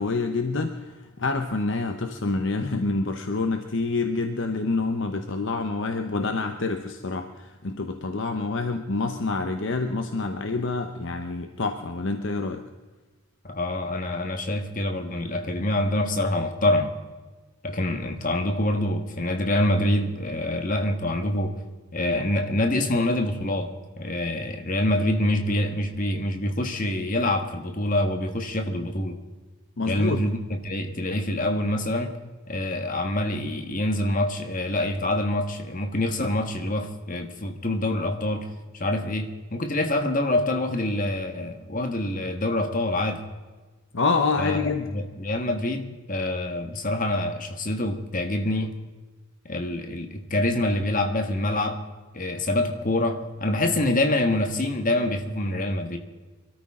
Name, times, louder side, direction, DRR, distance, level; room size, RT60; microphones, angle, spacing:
voice 1, 0.0-12.6 29.8-30.2 43.9-44.9, left 3 dB, 55° left, 6 dB, 0.9 m, -27 dB
voice 2, 13.4-16.9 17.6-21.5 21.9-23.7 24.0-29.1 29.9-32.1 32.5-38.5 38.7-43.2 44.4-48.8 49.4-51.8 52.1-56.0, left 1 dB, 35° left, 5 dB, 1.6 m, -26 dB
24.0 x 13.5 x 3.7 m, 1.3 s
head